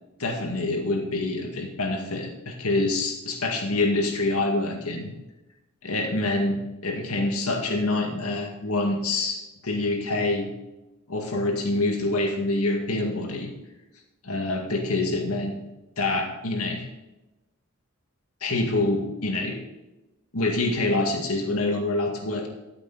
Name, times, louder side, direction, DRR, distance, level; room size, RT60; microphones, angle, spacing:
voice 1, 0.2-5.1 5.8-10.5 11.1-13.5 14.2-15.6 16.0-16.9 18.4-19.6 20.3-22.5, left 2 dB, 80° left, 2 dB, 2.0 m, -26 dB
13.5 x 7.9 x 4.0 m, 1.0 s
head